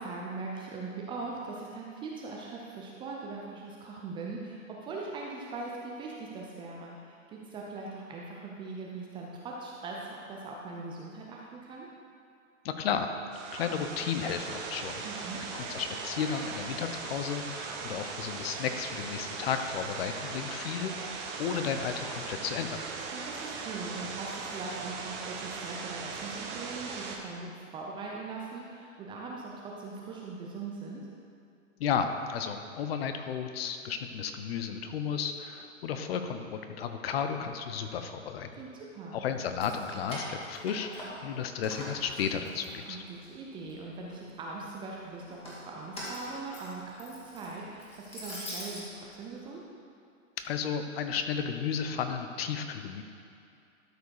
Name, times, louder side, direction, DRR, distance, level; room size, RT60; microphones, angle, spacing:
voice 1, 0.0-11.9 15.0-15.4 23.1-31.0 38.6-39.2 42.9-49.6, right 3 dB, 10° right, -2 dB, 0.5 m, -41 dB
voice 2, 12.6-13.1 13.5-15.0 15.5-21.1 21.4-22.8 31.8-38.5 39.1-43.0 50.4-53.0, left 7 dB, 45° left, 7 dB, 0.8 m, -33 dB
sound 1, 13.3-27.2, right 4 dB, 35° right, 1.0 m, -39 dB
Keys jangling, 39.4-41.3 41.6-43.3 43.7-44.4 45.2-48.8, equal, 15° left, 2.2 m, -43 dB
12.5 x 4.7 x 4.7 m, 2.5 s
hypercardioid pair, 120°, 40 cm